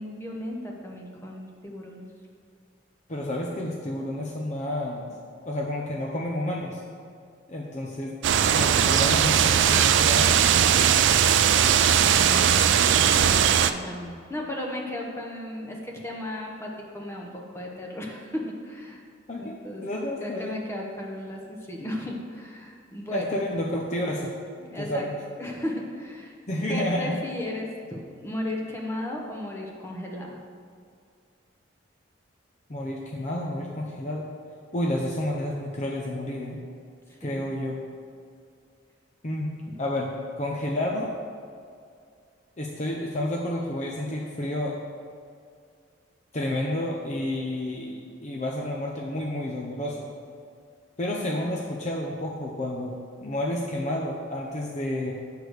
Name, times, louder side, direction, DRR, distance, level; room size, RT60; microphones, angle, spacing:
voice 1, 0.0-2.0 12.0-19.0 19.4-19.8 20.2-23.4 24.6-25.1 25.4-26.3 26.7-30.4 37.1-37.6 46.9-47.2 50.3-50.4, left 1 dB, 15° left, -1 dB, 1.0 m, -35 dB
voice 2, 3.1-5.1 5.4-6.8 7.5-10.5 19.3-20.6 23.1-24.3 24.8-25.1 26.5-27.1 32.7-34.3 34.7-36.6 37.2-37.8 39.2-40.1 40.4-41.1 42.6-44.8 46.3-50.1 51.0-52.9 53.2-55.1, left 1 dB, 35° left, -1 dB, 0.7 m, -30 dB
sound 1, 8.2-13.7, right 8 dB, 65° right, 0.4 m, -19 dB
8.7 x 4.8 x 6.4 m, 2.3 s
head